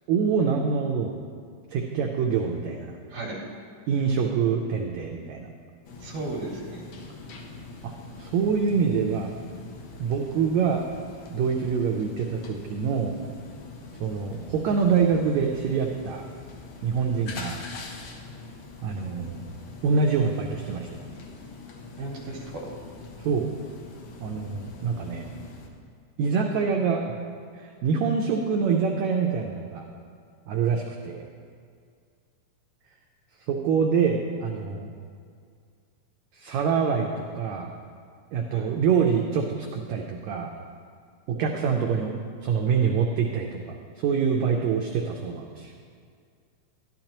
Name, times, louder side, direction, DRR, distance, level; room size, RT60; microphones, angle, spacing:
voice 1, 0.1-1.1 1.7-2.9 3.9-5.5 7.8-9.3 10.0-10.8 11.3-13.1 14.0-16.2 16.8-17.6 18.8-19.4 19.8-21.0 23.2-23.5 24.2-25.3 26.2-27.1 27.5-29.8 30.5-31.2 33.5-34.9 36.3-37.7 38.3-40.5 41.3-42.1 42.4-45.7, right 6 dB, 85° right, 2 dB, 1.6 m, -25 dB
sound 1, 5.8-25.7, left 3 dB, 70° left, 1.4 m, -43 dB
voice 2, 6.0-6.9 22.0-22.7 38.5-38.7 41.4-41.5, right 2 dB, 70° right, -2 dB, 2.7 m, -35 dB
12.5 x 12.0 x 2.9 m, 2.2 s
omnidirectional pair, 3.9 m